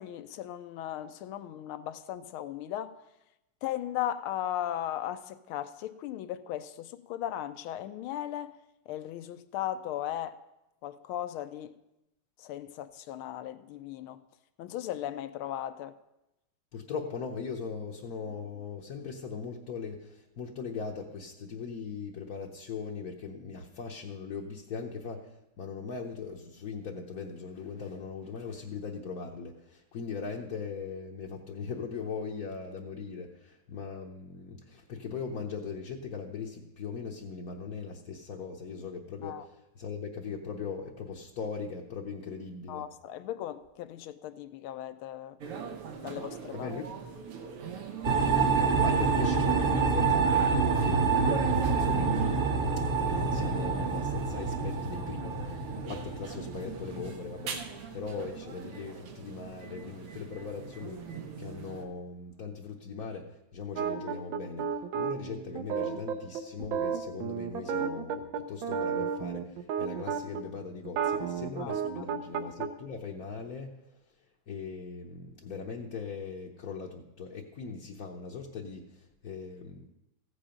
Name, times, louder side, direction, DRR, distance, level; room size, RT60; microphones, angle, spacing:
voice 1, 0.0-2.9 3.6-8.5 8.9-10.4 10.8-11.8 12.4-14.2 14.6-16.0 39.2-39.4 42.7-45.4 46.0-46.7 71.6-72.1, left 12 dB, 80° left, 1.5 m, -37 dB
voice 2, 16.7-42.9 46.5-46.9 48.3-52.1 53.0-57.6 57.9-73.7 74.5-79.9, left 5 dB, 55° left, 1.1 m, -40 dB
sound 1, 45.4-61.9, right 6 dB, 90° right, 2.1 m, -41 dB
sound 2, 48.0-57.6, right 4 dB, 40° right, 0.8 m, -27 dB
sound 3, 63.8-70.4 70.8-72.7, right 7 dB, 70° right, 1.5 m, -32 dB
15.0 x 8.7 x 5.1 m
omnidirectional pair, 2.4 m